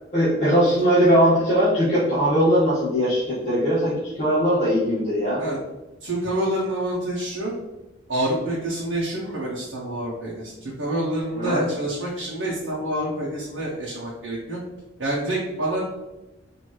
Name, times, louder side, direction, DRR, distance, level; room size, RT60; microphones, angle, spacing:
voice 1, 0.1-5.4 11.4-11.6, equal, 35° left, -12 dB, 1.4 m, -20 dB
voice 2, 6.0-7.5 8.1-14.6 15.0-15.8, right 1 dB, 70° right, -5 dB, 0.8 m, -27 dB
4.5 x 2.7 x 3.0 m, 1.0 s
head